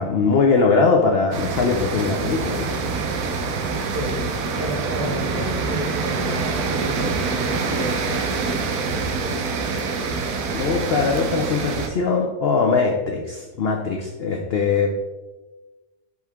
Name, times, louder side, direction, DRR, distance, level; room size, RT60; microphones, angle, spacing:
voice 1, 0.0-2.8 10.5-14.9, left 4 dB, 75° left, 2 dB, 0.5 m, -21 dB
sound 1, 1.3-11.9, right 4 dB, 70° right, 1.2 m, -25 dB
voice 2, 3.9-4.2 4.6-9.6, left 1 dB, 25° left, -6 dB, 2.2 m, -32 dB
6.4 x 4.6 x 3.5 m, 1.2 s
omnidirectional pair, 1.7 m